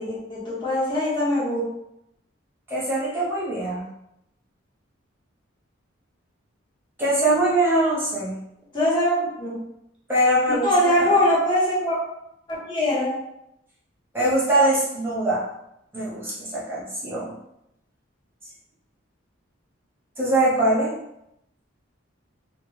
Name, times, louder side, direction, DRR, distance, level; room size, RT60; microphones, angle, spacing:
voice 1, 0.0-1.6 8.7-9.6 10.5-12.0 12.5-13.1, left 1 dB, 25° left, -8 dB, 0.8 m, -22 dB
voice 2, 2.7-3.8 7.0-8.3 10.1-10.7 11.0-11.1 14.1-15.4 15.9-17.4 20.2-20.9, right 1 dB, 10° right, -8 dB, 0.7 m, -22 dB
2.1 x 2.0 x 3.0 m, 0.82 s
head